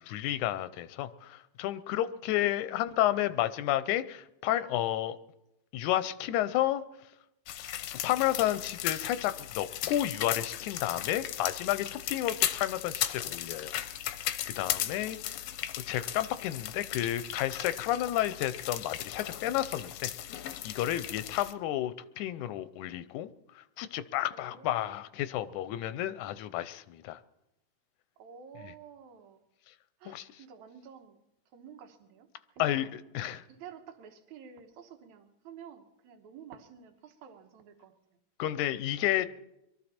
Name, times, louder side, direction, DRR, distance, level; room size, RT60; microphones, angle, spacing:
voice 1, 0.1-5.2 5.7-6.8 7.9-13.7 14.5-15.5 15.8-23.3 23.6-27.2 30.1-30.3 32.6-32.9 33.1-33.4 38.4-39.3, left 13 dB, 90° left, 13 dB, 2.1 m, -31 dB
voice 2, 2.3-2.6 14.8-15.7 21.2-21.3 24.3-25.1 28.2-29.4 30.0-31.2 31.5-33.0 33.5-38.2, right 7 dB, 75° right, 6 dB, 2.6 m, -51 dB
sound 1, 7.5-21.5, left 12 dB, 75° left, 1.6 m, -36 dB
23.0 x 13.5 x 4.3 m, 0.87 s
omnidirectional pair, 3.4 m